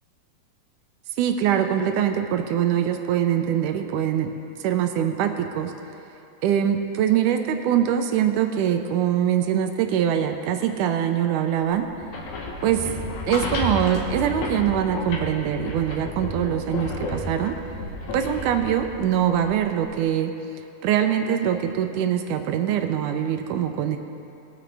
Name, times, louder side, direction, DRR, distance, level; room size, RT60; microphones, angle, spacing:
voice 1, 1.2-4.3 4.6-5.7 6.4-11.9 12.6-12.9 13.3-17.5 18.1-20.3 20.8-24.0, right 9 dB, 80° right, 6 dB, 2.0 m, -23 dB
sound 1, 11.9-19.9, left 2 dB, 65° left, 2.4 m, -32 dB
20.5 x 8.9 x 3.4 m, 2.7 s
omnidirectional pair, 4.0 m